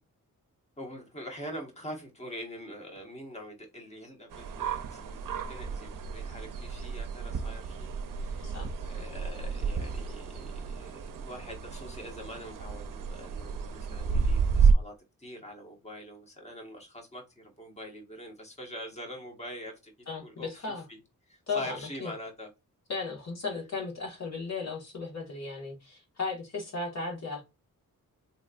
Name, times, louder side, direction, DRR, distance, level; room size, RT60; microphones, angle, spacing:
voice 1, 0.8-19.9 20.2-21.0 21.3-22.5, equal, 20° left, 1.2 m, -44 dB
sound 1, 4.3-14.7, right 6 dB, 70° right, 0.6 m, -31 dB
voice 2, 20.1-20.8 21.5-22.1 22.9-27.4, left 4 dB, 50° left, 1.7 m, -36 dB
4.1 x 3.1 x 2.5 m
wide cardioid pair, 130°, 33 cm